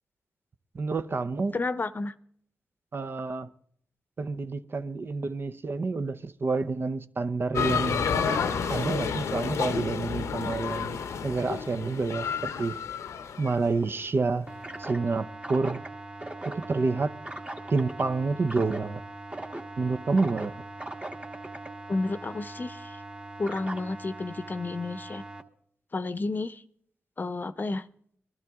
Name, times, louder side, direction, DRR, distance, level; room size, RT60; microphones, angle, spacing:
voice 1, 0.7-1.5 2.9-3.5 4.2-8.1 8.7-11.0 11.2-12.8 13.4-14.5 14.8-15.8 16.4-17.1 17.7-19.0 19.8-20.5, right 3 dB, 50° right, 0.7 m, -28 dB
voice 2, 1.5-2.1 21.9-23.0 23.4-25.2 25.9-26.6 27.2-27.8, left 3 dB, 40° left, 0.7 m, -31 dB
sound 1, 7.5-13.6, left 6 dB, 85° left, 0.8 m, -30 dB
sound 2, 14.5-25.4, right 2 dB, 25° right, 1.4 m, -40 dB
20.0 x 12.5 x 3.6 m
cardioid pair, 55°, 5 cm